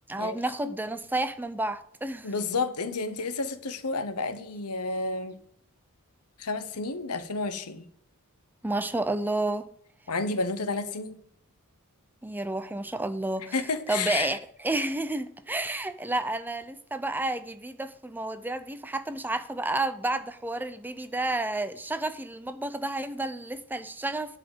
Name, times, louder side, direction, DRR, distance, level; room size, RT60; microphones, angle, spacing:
voice 1, 0.1-2.3 8.6-9.7 12.2-13.5 13.9-24.4, right 2 dB, 10° right, 0.5 m, -31 dB
voice 2, 2.2-5.4 6.4-7.9 10.1-11.2 13.5-14.3, left 3 dB, 90° left, 1.0 m, -31 dB
11.0 x 4.9 x 7.8 m
head